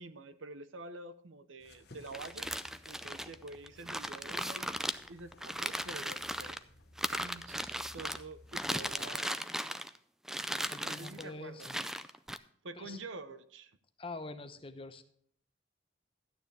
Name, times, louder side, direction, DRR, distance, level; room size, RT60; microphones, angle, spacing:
voice 1, 0.0-2.5 2.9-6.6 7.1-9.5 10.8-11.7 12.6-13.8, right 2 dB, 90° right, 13 dB, 0.8 m, -47 dB
sound 1, 1.6-9.0, left 1 dB, 55° left, 1.1 m, -58 dB
sound 2, 2.1-6.6 7.0-8.2 8.5-10.0 10.2-11.2 11.6-12.4, equal, ahead, 0.3 m, -37 dB
voice 2, 10.7-11.8 12.8-13.0 14.0-15.0, left 2 dB, 30° left, 9 dB, 0.8 m, -45 dB
13.0 x 9.4 x 3.3 m, 0.64 s
head